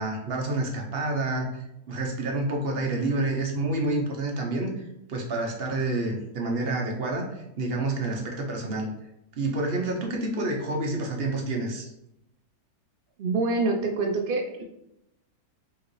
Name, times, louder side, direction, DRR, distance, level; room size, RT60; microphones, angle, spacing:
voice 1, 0.0-1.5 1.9-4.8 5.1-8.9 9.4-11.9, right 2 dB, 50° right, 1 dB, 0.8 m, -28 dB
voice 2, 13.2-14.6, right 3 dB, 85° right, 3 dB, 0.4 m, -26 dB
5.0 x 2.9 x 3.1 m, 0.82 s
omnidirectional pair, 1.6 m